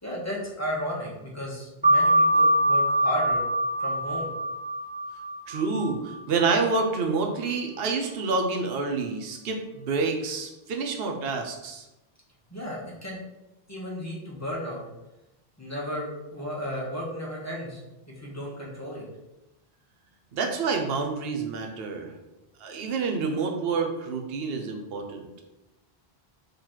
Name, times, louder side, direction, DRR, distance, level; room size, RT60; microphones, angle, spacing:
voice 1, 0.0-3.4 3.8-4.3 12.5-13.2 13.7-14.8 15.6-17.8 18.1-19.0, equal, 15° left, -4 dB, 1.2 m, -34 dB
sound 1, 1.8-7.0, right 1 dB, 10° right, 0.6 m, -24 dB
voice 2, 5.5-11.8 20.3-22.1 22.6-25.3, right 4 dB, 70° right, 4 dB, 0.9 m, -28 dB
3.9 x 3.2 x 4.3 m, 0.96 s
omnidirectional pair, 1.1 m